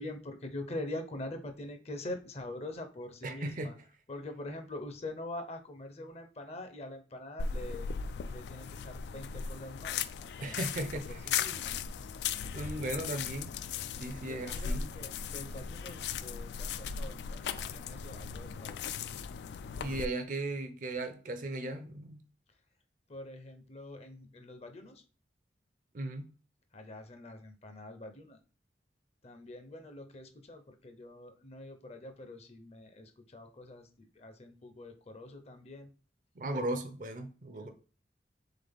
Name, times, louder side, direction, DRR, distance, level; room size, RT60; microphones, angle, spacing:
voice 1, 0.0-3.7 4.1-7.9 8.3-10.7 11.1-11.8 14.3-18.8 23.1-25.0 26.7-28.4 29.2-35.9 37.6-37.7, left 1 dB, 35° left, 0.6 m, -44 dB
voice 2, 3.2-3.8 10.4-11.4 12.5-13.5 14.0-14.9 19.8-22.2 25.9-26.3 36.4-37.7, right 2 dB, 50° right, 0.6 m, -37 dB
sound 1, 7.4-20.1, left 6 dB, 70° left, 0.3 m, -37 dB
3.8 x 3.7 x 3.5 m
head